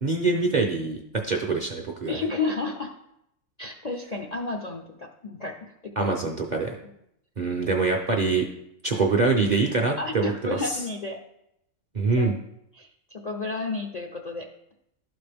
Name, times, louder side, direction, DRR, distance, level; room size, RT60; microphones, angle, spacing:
voice 1, 0.0-2.1 6.0-6.7 7.4-8.5 8.8-10.3 10.6-10.8 11.9-12.3, right 3 dB, 45° right, 2 dB, 0.6 m, -24 dB
voice 2, 2.1-2.9 3.6-6.2 10.0-11.2 12.2-12.3 12.7-14.5, left 3 dB, 50° left, 2 dB, 0.5 m, -32 dB
11.5 x 4.2 x 3.4 m, 0.79 s
omnidirectional pair, 1.4 m